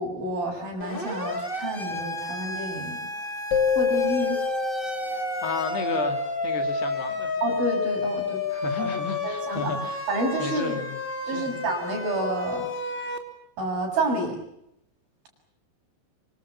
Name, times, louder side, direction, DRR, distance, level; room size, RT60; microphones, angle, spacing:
voice 1, 0.0-3.1 3.8-4.4 7.4-8.4 8.8-9.7 10.1-10.8 11.3-12.6 13.6-14.4, right 2 dB, 60° right, 2 dB, 8.7 m, -29 dB
Siren, 0.8-13.2, left 2 dB, 15° left, 2.6 m, -31 dB
sound 1, 3.5-6.1, left 6 dB, 55° left, 2.7 m, -27 dB
voice 2, 5.1-7.4 8.5-10.0 10.4-11.0 11.3-11.5, left 6 dB, 75° left, 7 dB, 4.8 m, -33 dB
26.0 x 25.0 x 7.2 m, 0.79 s
omnidirectional pair, 4.7 m